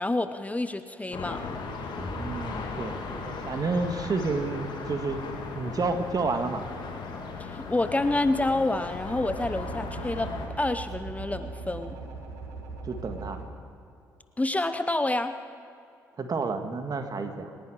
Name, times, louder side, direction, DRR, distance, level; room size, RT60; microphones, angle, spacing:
voice 1, 0.0-1.4 7.4-10.3 10.6-12.0 14.4-15.4, left 2 dB, 15° left, 10 dB, 0.8 m, -28 dB
sound 1, 1.1-10.5, left 4 dB, 55° left, 2.5 m, -37 dB
Boom, 1.9-9.8, right 1 dB, ahead, 4.4 m, -48 dB
voice 2, 2.1-5.2 5.5-6.6 12.8-13.4 16.2-17.5, right 3 dB, 45° right, 7 dB, 1.8 m, -30 dB
sound 2, 9.1-13.5, right 3 dB, 75° right, 1.6 m, -39 dB
28.0 x 10.5 x 4.9 m, 2.6 s
hypercardioid pair, 40°, 9 cm